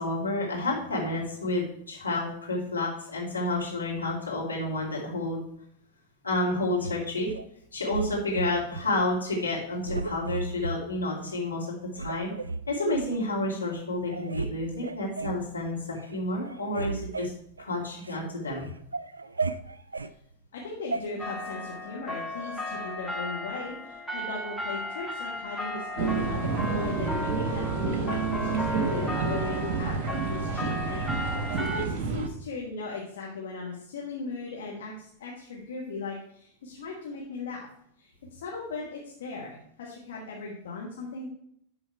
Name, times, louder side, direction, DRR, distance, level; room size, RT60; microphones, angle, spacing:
voice 1, 0.0-5.4 6.2-7.3 7.7-12.3 12.7-17.3 17.6-18.7, left 2 dB, 80° left, -4 dB, 2.6 m, -30 dB
sound 1, 6.8-7.4 7.9-8.9 9.3-9.5 9.8-10.8 11.3-11.4 11.9-13.1 13.7-13.8 14.1-14.5 14.8-15.4 15.9-16.2 16.4-18.2 18.6-20.1 20.9-21.0, right 3 dB, 80° right, 0.3 m, -34 dB
voice 2, 20.5-37.7 38.0-41.3, left 3 dB, 60° left, -3 dB, 1.4 m, -38 dB
sound 2, 21.2-31.9, left 1 dB, 5° left, 0.8 m, -35 dB
sound 3, 26.0-32.3, right 5 dB, 40° right, 1.1 m, -29 dB
11.5 x 3.9 x 4.6 m, 0.73 s
figure-of-eight pair, 90°, 0 cm